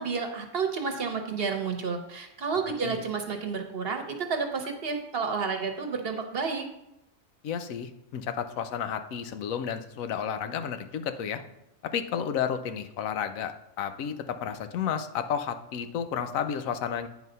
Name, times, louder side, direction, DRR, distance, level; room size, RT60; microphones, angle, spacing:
voice 1, 0.0-6.7, right 5 dB, 50° right, 5 dB, 1.0 m, -31 dB
voice 2, 7.4-11.4 11.8-13.5 13.8-17.1, left 8 dB, 80° left, 9 dB, 1.1 m, -32 dB
9.3 x 4.1 x 5.3 m, 0.84 s
omnidirectional pair, 1.4 m